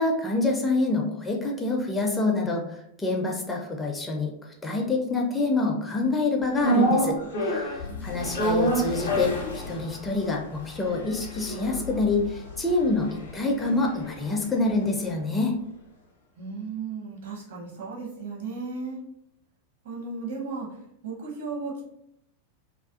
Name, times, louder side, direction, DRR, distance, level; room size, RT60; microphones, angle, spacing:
voice 1, 0.0-7.2 7.5-7.7 8.0-15.5, left 2 dB, 15° left, 0 dB, 0.4 m, -26 dB
sound 1, 6.6-14.9 15.2-15.3, right 1 dB, 65° left, 0.5 m, -29 dB
voice 2, 7.8-8.6 16.4-19.0 19.8-21.8, right 4 dB, 60° right, -3 dB, 0.8 m, -36 dB
2.4 x 2.2 x 2.4 m, 0.78 s
figure-of-eight pair, 90°, 0 cm